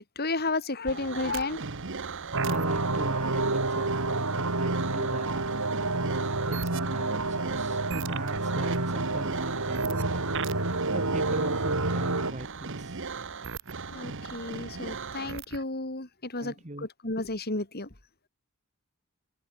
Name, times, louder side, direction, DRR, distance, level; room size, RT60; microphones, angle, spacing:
voice 1, 0.0-1.6 13.9-17.9, left 2 dB, 45° left, 3.5 m, -32 dB
sound 1, 0.9-15.6, right 4 dB, 60° right, 1.3 m, -38 dB
sound 2, 2.3-12.3, right 2 dB, 75° right, 3.1 m, -29 dB
voice 2, 2.4-5.9 6.4-10.0 10.9-13.0 16.4-16.9, right 1 dB, 30° right, 2.5 m, -40 dB
head